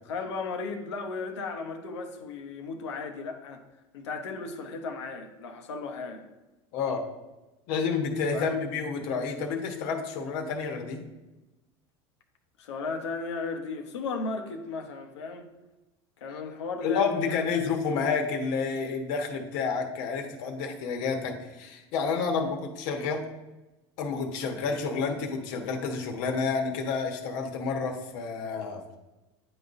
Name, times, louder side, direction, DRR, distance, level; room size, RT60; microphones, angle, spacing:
voice 1, 0.1-3.6 3.9-6.3 8.3-8.6 12.6-15.5 16.2-17.5, left 4 dB, 85° left, 3 dB, 0.9 m, -35 dB
voice 2, 6.7-7.1 7.7-11.0 16.8-23.3 24.0-29.0, left 5 dB, 65° left, 2 dB, 1.2 m, -30 dB
9.7 x 4.0 x 2.6 m, 1.0 s
supercardioid pair, 100°, 14 cm